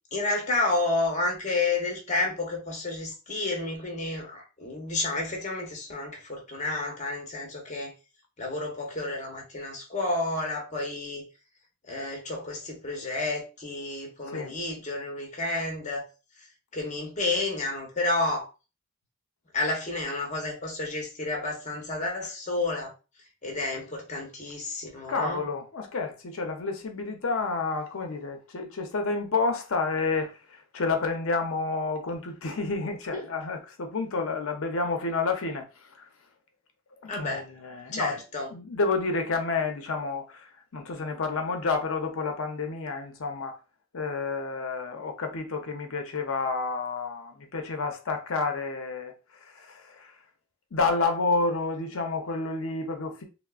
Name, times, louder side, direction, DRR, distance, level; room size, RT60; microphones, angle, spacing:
voice 1, 0.1-7.9 8.4-11.3 11.9-16.1 16.7-18.5 19.5-22.9 23.4-25.4 33.1-33.2 37.1-37.5 37.9-38.5, left 2 dB, 35° left, 0.9 m, -30 dB
voice 2, 25.1-36.1 37.0-38.2 38.5-43.6 43.9-50.1 50.7-53.2, left 3 dB, 65° left, 0.6 m, -30 dB
3.4 x 2.0 x 2.3 m
head